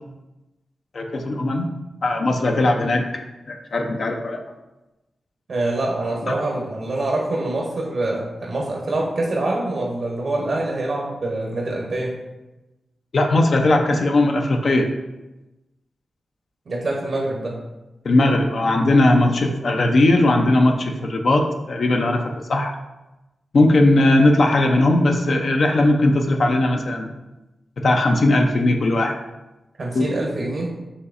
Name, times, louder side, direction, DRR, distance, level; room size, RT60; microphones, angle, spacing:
voice 1, 0.9-1.7 2.0-3.1 3.5-4.4 6.2-6.3 13.1-14.9 18.0-22.2 22.5-22.7 23.5-27.1 27.8-29.2 29.9-30.1, left 2 dB, 65° left, 2 dB, 0.5 m, -18 dB
voice 2, 5.5-12.2 16.7-17.6 29.8-30.7, right 2 dB, 70° right, -2 dB, 0.8 m, -25 dB
5.4 x 3.1 x 2.5 m, 1.0 s
supercardioid pair, 45°, 0 cm